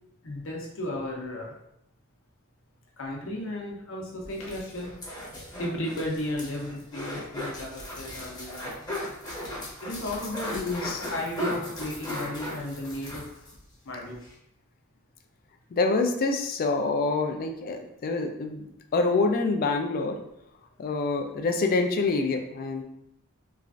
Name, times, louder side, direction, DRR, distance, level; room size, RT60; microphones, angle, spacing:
voice 1, 0.2-1.6 3.0-4.9 5.6-8.7 9.8-10.6 11.0-13.5 13.8-14.2, left 1 dB, 65° left, -1 dB, 0.7 m, -34 dB
sound 1, 4.2-13.6 13.9-14.0 14.2-14.3, left 1 dB, 20° left, 0.8 m, -37 dB
voice 2, 10.5-11.1 15.7-20.2 20.8-22.8, left 3 dB, 45° left, 4 dB, 0.3 m, -26 dB
3.1 x 2.4 x 2.4 m, 0.78 s
head